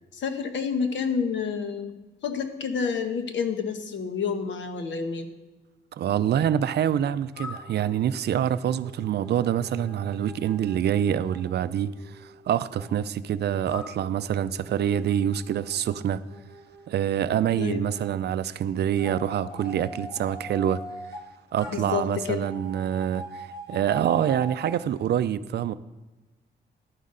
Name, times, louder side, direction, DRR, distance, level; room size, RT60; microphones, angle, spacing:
voice 1, 0.1-1.9 2.2-5.3 17.6-17.8 21.7-22.4, left 6 dB, 75° left, 1.1 m, -29 dB
voice 2, 5.9-16.2 16.9-20.8 21.5-25.7, right 9 dB, 60° right, 0.4 m, -26 dB
sound 1, 7.3-12.9 13.7-18.1 19.0-21.2 21.6-24.8, left 1 dB, 20° left, 1.7 m, -43 dB
11.0 x 9.5 x 3.8 m
wide cardioid pair, 145°, 19 cm